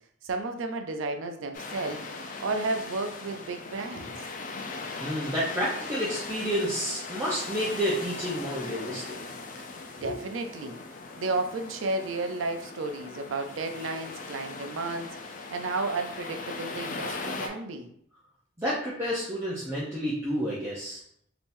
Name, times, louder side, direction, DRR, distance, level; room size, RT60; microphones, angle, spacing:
voice 1, 0.2-2.0 2.4-4.1 10.0-10.8 11.2-17.9, right 3 dB, 80° right, 6 dB, 0.5 m, -32 dB
mar orilla, 1.5-17.5, left 3 dB, 40° left, 0.4 m, -39 dB
voice 2, 5.0-9.2 10.0-10.1 18.6-21.0, equal, 15° right, -7 dB, 0.6 m, -30 dB
3.6 x 2.9 x 2.6 m, 0.69 s
head